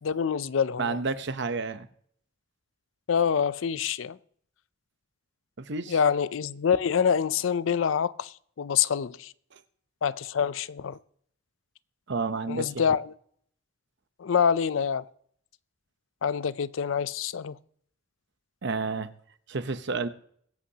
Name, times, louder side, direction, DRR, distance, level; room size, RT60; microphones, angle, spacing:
voice 1, 0.0-1.0 3.1-4.2 5.9-9.3 10.0-11.0 12.5-13.1 14.2-15.1 16.2-17.6, left 7 dB, 80° left, 0.4 m, -26 dB
voice 2, 0.8-1.9 5.6-6.0 9.5-9.6 12.1-12.7 18.6-19.1 19.5-20.1, right 4 dB, 60° right, 0.8 m, -30 dB
22.0 x 8.4 x 2.8 m
head